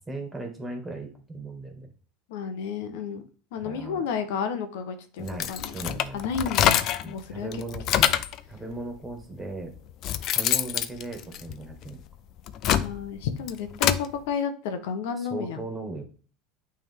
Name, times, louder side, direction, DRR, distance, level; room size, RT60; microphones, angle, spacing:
voice 1, 0.1-1.9 3.6-4.0 5.2-6.2 7.0-7.8 8.5-9.7 10.3-12.0 15.2-16.0, right 2 dB, 10° right, 3 dB, 2.1 m, -37 dB
voice 2, 2.3-3.2 3.5-5.7 6.1-7.5 8.0-8.1 12.8-15.6, left 6 dB, 75° left, 8 dB, 0.9 m, -31 dB
sound 1, 5.3-7.1 7.5-8.4 9.2-9.3 9.8-11.9 12.4-14.1, left 10 dB, 55° left, 0.6 m, -25 dB
9.1 x 3.6 x 3.6 m, 0.40 s
supercardioid pair, 105°, 0 cm